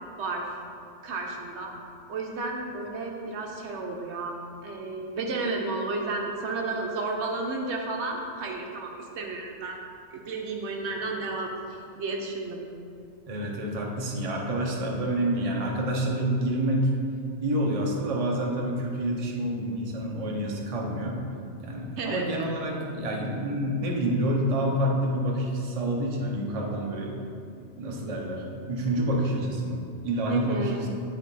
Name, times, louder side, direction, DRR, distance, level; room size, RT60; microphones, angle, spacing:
voice 1, 0.2-0.5 1.0-1.8 2.1-4.4 4.6-9.8 10.1-12.6 22.0-22.5 30.3-30.9, right 3 dB, 65° right, 1 dB, 0.9 m, -32 dB
voice 2, 13.3-17.0 17.4-21.2 21.6-27.2 27.6-30.6, right 1 dB, 35° right, -1 dB, 0.7 m, -28 dB
9.4 x 3.6 x 4.0 m, 2.5 s
omnidirectional pair, 1.3 m